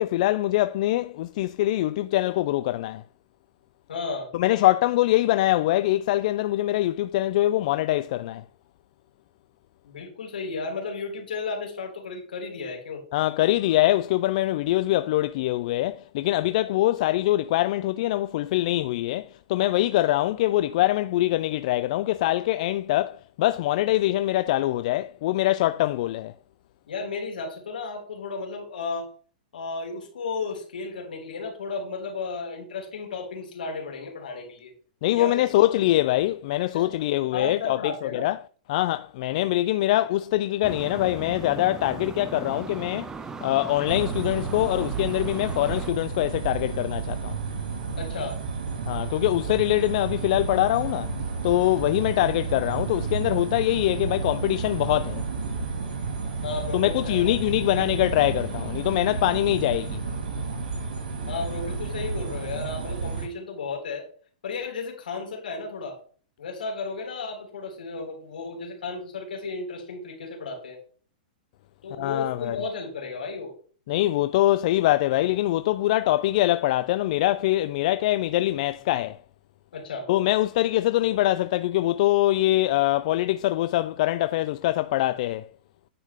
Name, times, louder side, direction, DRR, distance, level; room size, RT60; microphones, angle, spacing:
voice 1, 0.0-3.0 4.3-8.4 13.1-26.3 35.0-38.4 38.7-43.1 43.4-47.4 48.9-51.1 51.4-55.2 56.7-60.0 72.0-72.6 73.9-79.2 80.1-85.5, left 15 dB, 55° left, 0.3 m, -23 dB
voice 2, 3.9-4.3 9.8-13.0 26.9-29.1 29.5-34.7 35.1-35.4 36.7-36.9 37.3-38.2 48.0-48.4 56.4-57.4 57.7-57.8 61.3-64.1 64.4-66.0 66.4-70.8 71.8-73.5 79.7-80.1, left 4 dB, 85° left, 3.2 m, -34 dB
sound 1, 40.6-45.9, right 5 dB, 15° right, 0.5 m, -38 dB
sound 2, 43.9-63.3, right 5 dB, 80° right, 2.1 m, -31 dB
9.3 x 4.9 x 3.6 m
hypercardioid pair, 130°, 5 cm